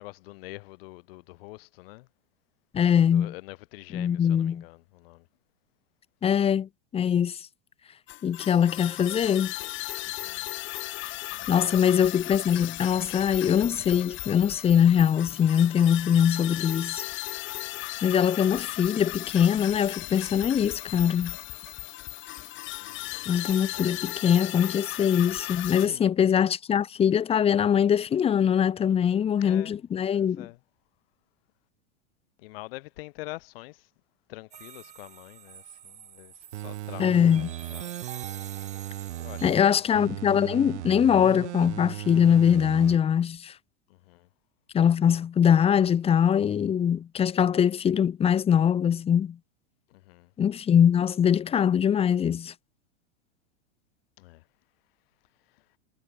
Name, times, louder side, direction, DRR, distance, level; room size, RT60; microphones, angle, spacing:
voice 1, 0.0-2.1 3.1-5.3 10.0-10.5 11.3-12.0 22.8-23.3 23.7-24.0 25.8-26.1 28.8-29.8 30.1-30.6 32.4-33.9 34.3-38.1 39.2-39.9 43.9-44.3 49.9-50.3 54.2-54.4, left 21 dB, 55° left, 2.7 m, -46 dB
voice 2, 2.7-3.3 3.9-4.6 6.2-7.4 8.2-9.5 11.5-17.1 18.0-21.3 23.3-30.5 37.0-37.5 39.4-43.5 44.7-49.4 50.4-52.5, left 8 dB, 15° left, 1.3 m, -22 dB
sound 1, 8.1-25.9, left 17 dB, 35° left, 3.9 m, -36 dB
sound 2, 34.5-39.6, right 9 dB, 20° right, 2.8 m, -46 dB
sound 3, 36.5-39.5 39.9-43.0 43.4-43.5, right 15 dB, 70° right, 1.8 m, -37 dB
supercardioid pair, 150°, 35 cm